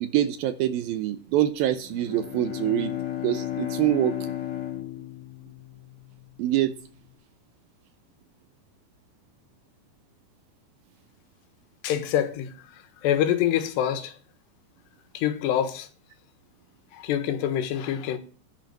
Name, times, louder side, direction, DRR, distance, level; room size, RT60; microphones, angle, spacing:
voice 1, 0.0-3.0 3.2-4.3 6.4-6.7, right 13 dB, 75° right, 2.2 m, -25 dB
Bowed string instrument, 1.8-6.4, left 12 dB, 45° left, 2.0 m, -34 dB
voice 2, 11.8-14.1 15.1-15.9 16.9-18.2, left 10 dB, 85° left, 3.4 m, -26 dB
10.5 x 10.5 x 6.5 m
omnidirectional pair, 4.9 m